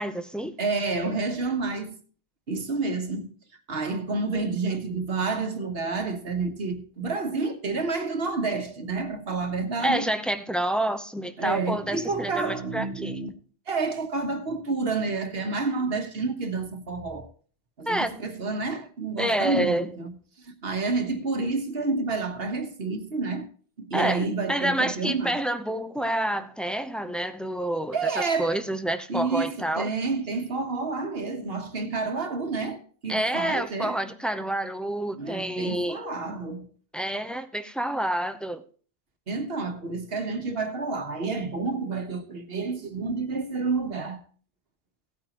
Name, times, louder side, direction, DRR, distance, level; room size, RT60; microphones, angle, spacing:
voice 1, 0.0-0.6 9.8-13.2 17.9-18.2 19.2-19.9 23.9-29.9 33.1-36.0 36.9-38.6, right 1 dB, ahead, 0.6 m, -28 dB
voice 2, 0.6-2.0 2.5-3.3 3.7-10.1 11.4-13.3 13.7-17.3 17.8-20.1 20.4-23.5 23.8-25.4 27.9-28.6 29.1-34.0 35.1-36.7 39.3-44.2, right 3 dB, 60° right, 1.5 m, -29 dB
16.5 x 9.0 x 3.0 m
omnidirectional pair, 1.2 m